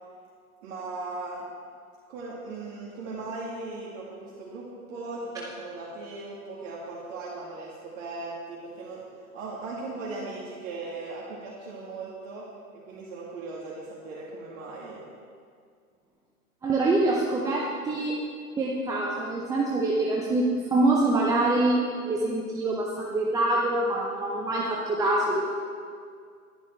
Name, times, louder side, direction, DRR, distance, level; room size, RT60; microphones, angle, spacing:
voice 1, 0.6-1.4 2.1-9.0 9.3-12.5 12.9-15.0, right 3 dB, 55° right, -5 dB, 2.1 m, -38 dB
voice 2, 16.6-18.1 18.6-21.8 22.0-25.6, right 2 dB, 10° right, -3 dB, 0.5 m, -25 dB
11.0 x 10.0 x 4.4 m, 2.2 s
hypercardioid pair, 120°, 45 cm